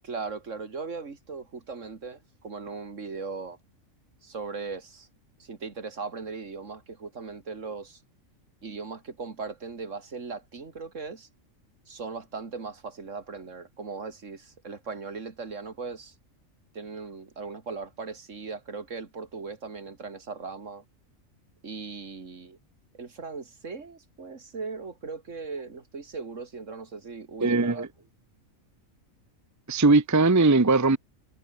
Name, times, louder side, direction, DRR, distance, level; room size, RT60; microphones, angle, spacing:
voice 1, 0.0-3.6 4.2-5.1 5.4-8.0 8.6-11.3 11.9-16.1 16.7-20.8 21.6-22.6 22.9-27.9, right 4 dB, 65° right, 2.5 m, -38 dB
voice 2, 27.4-27.9 29.7-31.0, right 3 dB, 15° right, 0.7 m, -20 dB
omnidirectional pair, 1.4 m